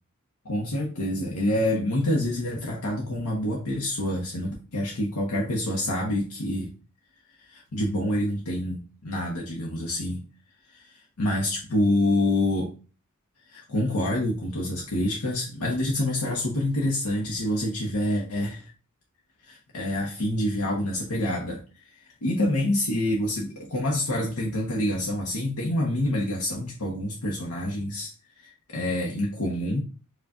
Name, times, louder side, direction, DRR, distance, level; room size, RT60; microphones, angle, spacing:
voice 1, 0.4-6.7 7.5-10.3 10.7-12.8 13.5-18.6 19.5-21.6 21.9-28.1 28.4-29.8, left 1 dB, 80° left, -2 dB, 0.9 m, -27 dB
4.7 x 2.4 x 3.6 m, 0.35 s
head